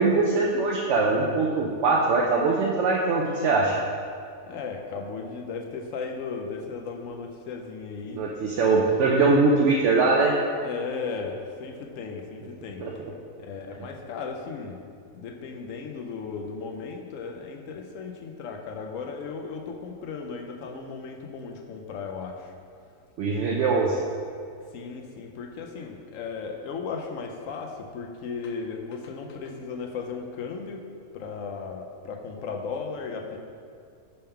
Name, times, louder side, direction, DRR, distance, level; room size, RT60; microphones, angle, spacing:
voice 1, 0.0-3.7 8.1-10.4 12.8-12.9 23.2-24.0, right 3 dB, 65° right, -2 dB, 0.8 m, -22 dB
voice 2, 4.4-8.2 10.6-12.9 13.4-14.8 15.1-22.5 24.7-30.9 31.1-33.4, left 5 dB, 70° left, 2 dB, 0.9 m, -36 dB
5.5 x 3.5 x 5.6 m, 2.3 s
omnidirectional pair, 1.5 m